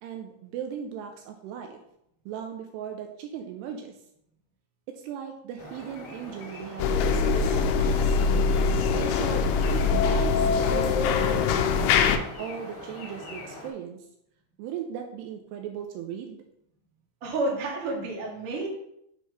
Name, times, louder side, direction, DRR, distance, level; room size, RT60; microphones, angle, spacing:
voice 1, 0.0-1.8 2.3-3.9 4.9-8.2 8.9-11.9 12.4-14.0 14.6-16.4, right 8 dB, 85° right, 4 dB, 2.6 m, -37 dB
sound 1, 5.6-13.7, left 1 dB, 55° left, 2.5 m, -43 dB
sound 2, 6.8-12.2, left 5 dB, 85° left, 2.3 m, -23 dB
voice 2, 17.2-18.7, right 2 dB, 50° right, -2 dB, 1.9 m, -30 dB
6.7 x 4.5 x 4.7 m, 0.77 s
omnidirectional pair, 5.0 m